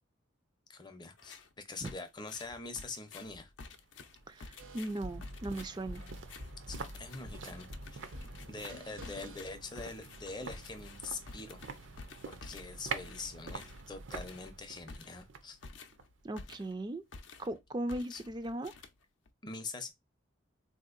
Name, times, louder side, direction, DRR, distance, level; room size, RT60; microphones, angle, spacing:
voice 1, 0.7-3.5 6.7-8.1 8.4-11.6 12.3-15.6 18.1-18.2 19.4-19.9, left 3 dB, 20° left, 0.6 m, -44 dB
sound 1, 1.2-1.5 1.8-16.8 17.1-17.6 17.9-19.3, left 3 dB, 65° left, 0.5 m, -51 dB
sound 2, 3.7-16.9 17.2-17.3, right 5 dB, 70° right, 0.6 m, -47 dB
voice 2, 4.3-6.0 16.2-17.0 17.4-18.7, right 1 dB, 20° right, 0.4 m, -38 dB
sound 3, 4.6-10.0, equal, 90° right, 1.0 m, -47 dB
3.8 x 2.7 x 2.4 m
head